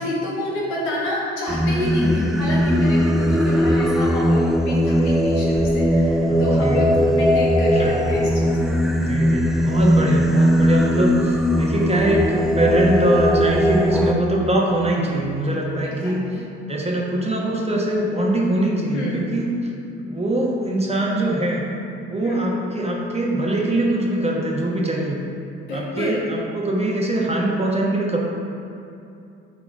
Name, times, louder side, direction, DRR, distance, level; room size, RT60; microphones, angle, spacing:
voice 1, 0.0-8.8 15.8-16.4 18.9-19.3 22.2-22.3 25.6-26.2, equal, 70° left, -5 dB, 1.6 m, -29 dB
Singing, 1.5-14.1, equal, ahead, 0.4 m, -19 dB
voice 2, 6.2-6.9 7.7-8.0 9.0-19.7 20.0-21.6 22.1-25.2 25.7-28.2, right 1 dB, 15° right, -3 dB, 1.3 m, -23 dB
10.0 x 3.8 x 3.7 m, 2.6 s
figure-of-eight pair, 50°, 36 cm